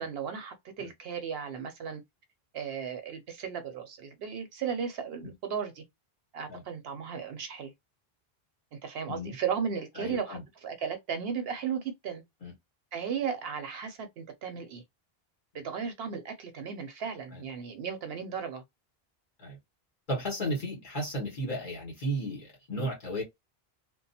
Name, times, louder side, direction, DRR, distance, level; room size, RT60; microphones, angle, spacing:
voice 1, 0.0-2.0 2.5-5.8 6.3-7.7 8.7-12.2 12.9-14.8 15.5-18.6, right 7 dB, 70° right, 0.8 m, -35 dB
voice 2, 10.0-10.4 12.4-12.5 17.3-17.4 19.4-19.6 20.1-23.2, equal, 50° left, 1.7 m, -34 dB
2.9 x 2.0 x 2.7 m
omnidirectional pair, 1.1 m